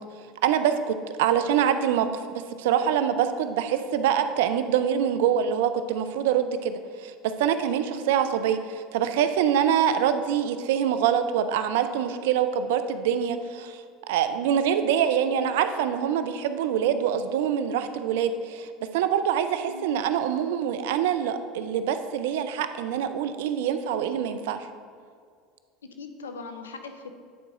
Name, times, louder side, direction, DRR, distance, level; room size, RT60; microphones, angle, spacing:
voice 1, 0.4-7.1 7.4-13.8 14.1-24.7, right 9 dB, 75° right, 10 dB, 0.5 m, -25 dB
voice 2, 7.9-8.2 19.7-20.0 25.8-27.1, left 4 dB, 90° left, 7 dB, 0.6 m, -40 dB
9.3 x 4.1 x 4.8 m, 2.1 s
hypercardioid pair, 80°, 0 cm